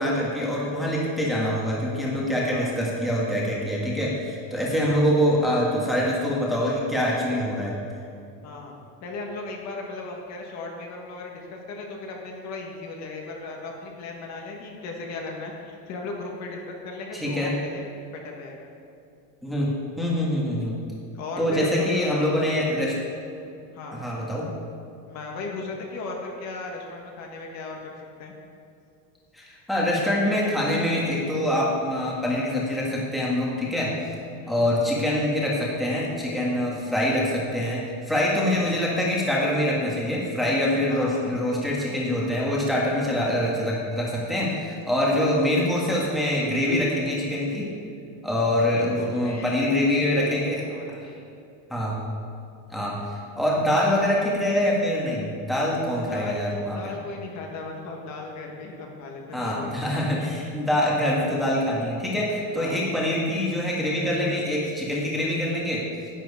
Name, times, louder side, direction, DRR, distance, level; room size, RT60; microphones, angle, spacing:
voice 1, 0.0-7.8 17.1-17.5 19.4-19.7 20.0-20.8 21.4-22.9 23.9-24.5 29.3-33.9 34.5-47.7 48.2-50.6 51.0-51.1 51.7-52.0 52.7-53.0 53.3-56.8 59.3-65.8, left 1 dB, ahead, -5 dB, 1.6 m, -24 dB
voice 2, 8.4-8.7 9.0-18.7 21.1-22.3 23.7-24.0 25.1-28.3 30.2-30.3 34.4-34.7 40.9-41.3 48.5-50.4 50.7-51.2 56.1-59.8 62.5-62.8, left 3 dB, 45° left, 0 dB, 1.6 m, -37 dB
11.0 x 9.0 x 4.9 m, 2.6 s
cardioid pair, 165°, 39 cm